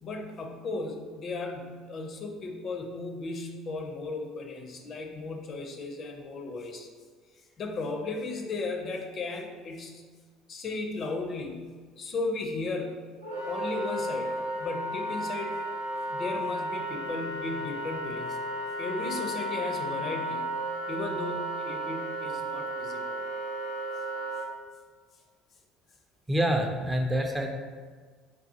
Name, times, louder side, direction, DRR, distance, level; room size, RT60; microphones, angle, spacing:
voice 1, 0.0-6.9 7.6-10.0 10.5-11.7 12.0-13.0 13.4-15.6 16.1-18.4 18.8-20.4 20.9-23.2, left 3 dB, 45° left, 2 dB, 0.5 m, -35 dB
Wind instrument woodwind instrument, 13.2-24.4, right 1 dB, 85° right, 0.5 m, -34 dB
voice 2, 26.3-27.5, equal, 15° right, 2 dB, 0.5 m, -26 dB
4.7 x 2.3 x 2.7 m, 1.5 s
figure-of-eight pair, 60°, 0 cm